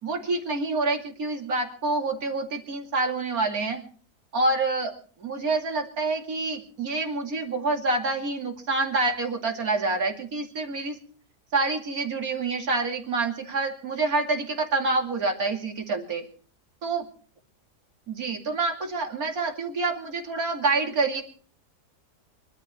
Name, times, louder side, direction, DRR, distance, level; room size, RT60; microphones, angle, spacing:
voice 1, 0.0-3.8 4.3-4.9 5.2-11.0 11.5-16.3 16.8-17.1 18.1-21.2, right 3 dB, 65° right, 2 dB, 3.0 m, -27 dB
24.0 x 12.0 x 4.4 m, 0.43 s
omnidirectional pair, 1.7 m